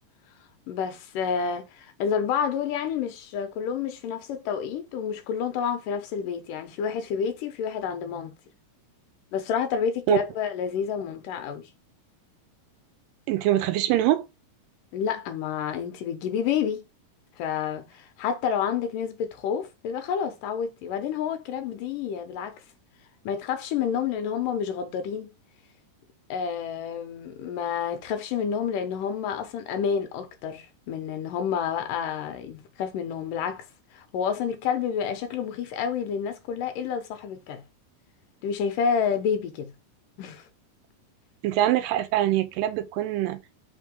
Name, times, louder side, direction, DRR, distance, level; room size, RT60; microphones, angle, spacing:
voice 1, 0.7-8.3 9.3-11.7 14.9-16.9 17.4-22.6 23.3-25.3 26.3-33.6 33.9-37.6 38.4-39.7 40.2-40.5, left 7 dB, 75° left, 2.5 m, -29 dB
voice 2, 13.3-14.3 41.4-43.4, right 13 dB, 85° right, 2.5 m, -23 dB
5.7 x 3.7 x 5.2 m
omnidirectional pair, 3.9 m